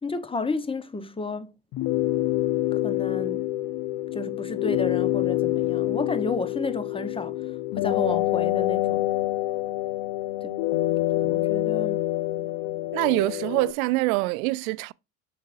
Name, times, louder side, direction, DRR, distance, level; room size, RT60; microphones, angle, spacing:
voice 1, 0.0-1.5 2.7-3.5 4.1-9.1 10.4-10.6 11.2-12.0, left 3 dB, 10° left, 1.1 m, -32 dB
sound 1, 1.7-13.7, left 15 dB, 55° left, 0.7 m, -26 dB
voice 2, 12.9-14.9, right 21 dB, 75° right, 0.6 m, -24 dB
7.2 x 6.0 x 2.6 m
hypercardioid pair, 75°, 43 cm